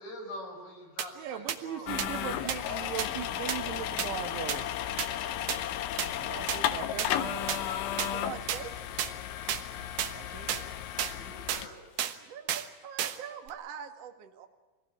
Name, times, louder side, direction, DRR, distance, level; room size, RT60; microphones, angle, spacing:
voice 1, 0.0-2.0 11.0-11.8 12.1-12.2, left 1 dB, 50° left, 0 dB, 8.2 m, -45 dB
sound 1, 1.0-1.1 1.5-1.6 2.0-2.1 2.5-2.6 3.0-3.1 3.5-3.6 4.0-4.1 4.5-4.6 5.0-5.1 5.5-5.6 6.0-6.1 6.5-6.6 7.0-7.1 7.5-7.6 8.0-8.1 8.5-8.6 9.0-9.1 9.5-9.6 10.0-10.1 10.5-10.6 11.0-11.1 11.5-11.6 12.0-12.1 12.5-12.7 13.0-13.2 13.5-13.6, right 10 dB, 90° right, 1.9 m, -31 dB
voice 2, 1.2-4.7 6.1-7.6 9.8-10.8, right 10 dB, 75° right, 4 dB, 3.4 m, -40 dB
sound 2, 1.9-11.7, left 11 dB, 75° left, 3.3 m, -34 dB
voice 3, 8.1-8.7 12.2-14.5, right 8 dB, 55° right, 4 dB, 1.8 m, -43 dB
24.5 x 17.5 x 9.3 m, 1.3 s
omnidirectional pair, 6.0 m